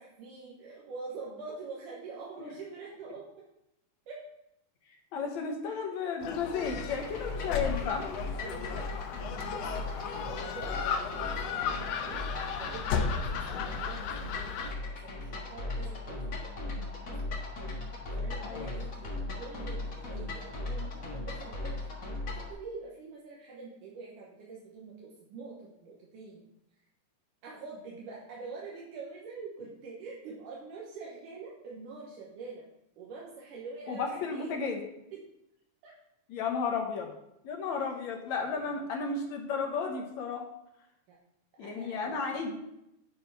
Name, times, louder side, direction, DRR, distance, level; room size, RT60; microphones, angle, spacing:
voice 1, 0.0-3.3 4.1-4.2 8.3-8.9 9.3-17.4 18.1-21.8 22.4-26.4 27.4-32.6 33.0-34.5 35.1-35.2 35.8-35.9 37.7-38.2 38.5-38.9 41.1-41.2 41.5-42.4, right 4 dB, 80° right, -4 dB, 2.7 m, -45 dB
voice 2, 5.1-8.0 18.4-18.7 33.9-34.8 36.3-37.1 37.4-40.4 41.6-42.6, left 5 dB, 65° left, 2 dB, 2.2 m, -33 dB
Gull seagull, 6.2-14.7, left 6 dB, 85° left, 1.4 m, -35 dB
sound 1, 6.6-22.5, left 2 dB, 40° left, 1.2 m, -38 dB
10.0 x 4.6 x 4.7 m, 0.84 s
omnidirectional pair, 3.8 m